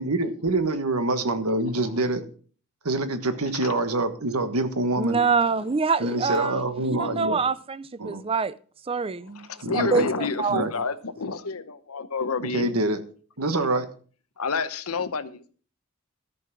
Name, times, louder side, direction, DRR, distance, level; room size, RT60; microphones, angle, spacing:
voice 1, 0.0-2.2 2.8-5.2 6.0-7.4 8.0-8.2 9.6-10.1 10.5-10.7 12.5-13.0 13.4-13.9, right 2 dB, 85° right, 1.5 m, -25 dB
voice 2, 3.4-3.8 5.6-5.7 7.0-7.3 9.3-12.7 14.4-15.5, left 4 dB, 80° left, 0.9 m, -30 dB
voice 3, 5.0-8.5 8.9-9.5 9.7-10.6, right 4 dB, 25° right, 0.5 m, -25 dB
13.5 x 5.7 x 6.1 m
head